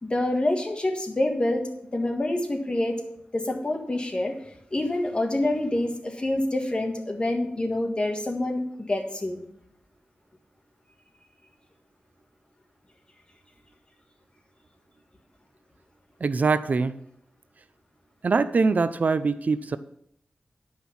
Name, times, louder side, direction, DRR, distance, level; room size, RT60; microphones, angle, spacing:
voice 1, 0.0-2.9 3.3-4.3 4.7-9.4, left 1 dB, 30° left, 3 dB, 1.5 m, -27 dB
voice 2, 16.2-16.9 18.2-19.8, right 4 dB, 55° right, 13 dB, 0.4 m, -23 dB
10.5 x 5.6 x 6.0 m, 0.72 s
wide cardioid pair, 115°, 3 cm